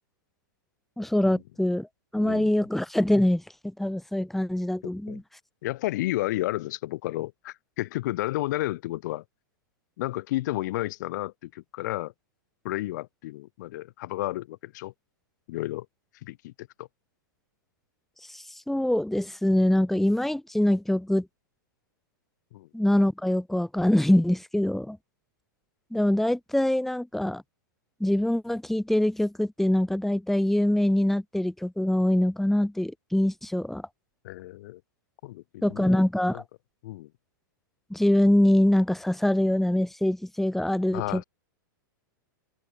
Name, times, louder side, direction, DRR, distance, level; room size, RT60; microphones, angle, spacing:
voice 1, 1.0-1.9 2.1-5.2 18.3-21.3 22.7-25.0 25.9-27.4 28.0-33.8 35.6-36.4 37.9-41.2, left 1 dB, ahead, 3.9 m, -24 dB
voice 2, 2.2-2.5 4.8-5.2 5.6-9.2 10.0-12.1 12.6-14.9 15.5-15.9 16.2-16.9 22.5-22.7 34.2-34.8 35.2-36.0 36.3-36.4 36.8-37.1 40.9-41.2, left 17 dB, 60° left, 6.0 m, -32 dB
hypercardioid pair, 125°, 11 cm